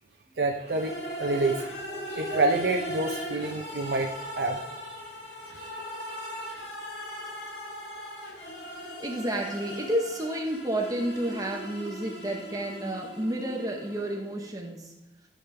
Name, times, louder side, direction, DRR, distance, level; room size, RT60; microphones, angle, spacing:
voice 1, 0.4-0.9 1.2-1.7 2.1-4.6 4.9-5.0, right 2 dB, 65° right, 1 dB, 0.6 m, -27 dB
sound 1, 0.6-14.5, equal, 75° left, 1.6 m, -39 dB
voice 2, 8.6-14.9, right 1 dB, 20° right, 1 dB, 0.8 m, -31 dB
11.5 x 5.1 x 3.3 m, 1.0 s
head